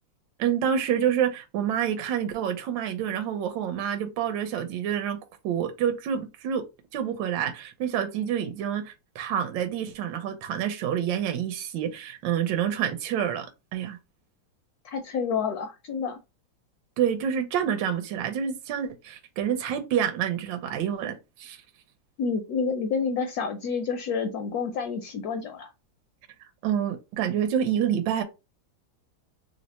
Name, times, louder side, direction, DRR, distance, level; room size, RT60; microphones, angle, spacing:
voice 1, 0.4-5.2 5.4-6.6 6.9-14.0 17.0-21.6 26.6-28.2, right 9 dB, 75° right, 1.3 m, -28 dB
voice 2, 14.8-16.2 22.2-25.7, left 5 dB, 70° left, 0.9 m, -29 dB
3.2 x 2.0 x 4.0 m
omnidirectional pair, 2.1 m